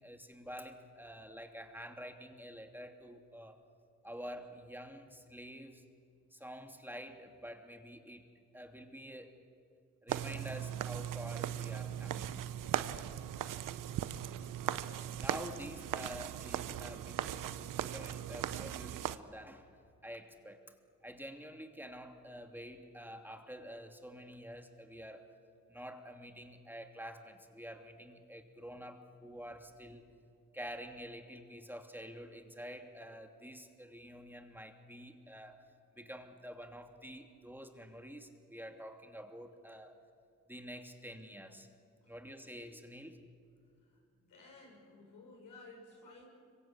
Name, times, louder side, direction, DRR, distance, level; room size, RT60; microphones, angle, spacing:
voice 1, 0.0-3.6 4.0-5.8 6.3-8.3 8.5-9.4 10.0-12.4 15.2-19.7 20.0-20.6 21.0-25.3 25.7-30.1 30.5-35.6 35.9-39.9 40.5-41.7 42.1-43.2, equal, 5° right, 4 dB, 2.9 m, -48 dB
sound 1, 10.1-19.2, right 11 dB, 85° right, 0.8 m, -38 dB
voice 2, 43.9-46.2, left 3 dB, 90° left, 0 dB, 6.5 m, -55 dB
25.5 x 23.5 x 8.5 m, 2.4 s
supercardioid pair, 45°, 32 cm